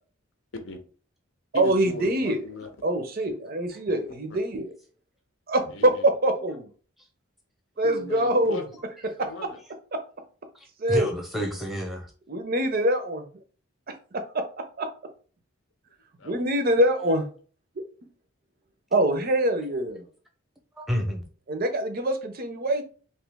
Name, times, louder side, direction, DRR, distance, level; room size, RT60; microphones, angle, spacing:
voice 1, 0.5-0.8 1.5-2.7 4.3-4.4 5.7-6.1 7.8-8.6 9.2-9.6 16.2-16.4, left 2 dB, 65° left, 6 dB, 0.7 m, -38 dB
voice 2, 1.5-2.4 2.8-4.7 5.5-6.7 7.8-8.6 9.2-9.3 9.9-10.0 10.8-11.1 12.3-13.3 14.1-14.9 16.2-17.2 17.8-17.9 18.9-20.0 21.5-22.8, right 1 dB, 45° right, 7 dB, 0.5 m, -24 dB
voice 3, 10.5-12.1 20.8-21.2, equal, ahead, 2 dB, 0.7 m, -30 dB
3.0 x 2.8 x 3.4 m, 0.40 s
head